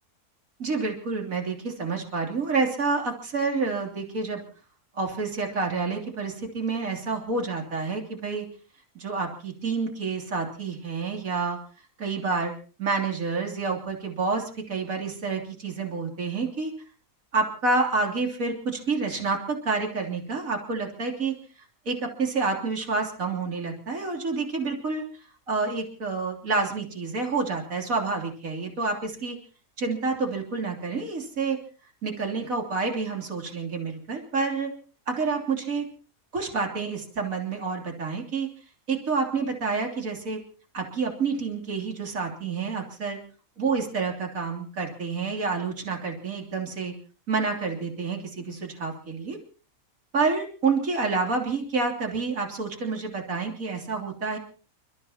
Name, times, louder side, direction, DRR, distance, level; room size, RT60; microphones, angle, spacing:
voice 1, 0.6-4.4 5.0-8.5 9.0-11.6 12.0-12.5 12.8-16.7 17.3-21.3 21.9-25.0 25.5-29.4 29.8-31.6 32.0-34.7 35.1-35.9 36.3-38.5 38.9-40.4 40.7-43.2 43.6-46.9 47.3-49.4 50.1-54.4, right 4 dB, 65° right, 2 dB, 3.5 m, -28 dB
29.5 x 14.0 x 2.9 m, 0.39 s
omnidirectional pair, 1.6 m